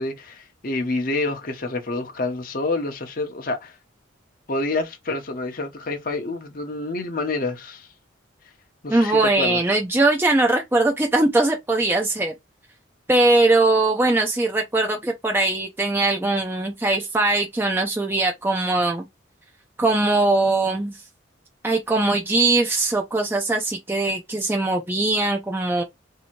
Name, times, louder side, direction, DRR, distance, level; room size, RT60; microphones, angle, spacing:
voice 1, 0.0-3.8 4.5-7.9 8.8-9.6, left 2 dB, 45° left, 0.7 m, -28 dB
voice 2, 8.9-12.3 13.1-19.0 19.8-21.0 21.6-25.8, right 2 dB, 10° right, 0.4 m, -21 dB
2.8 x 2.6 x 4.3 m
head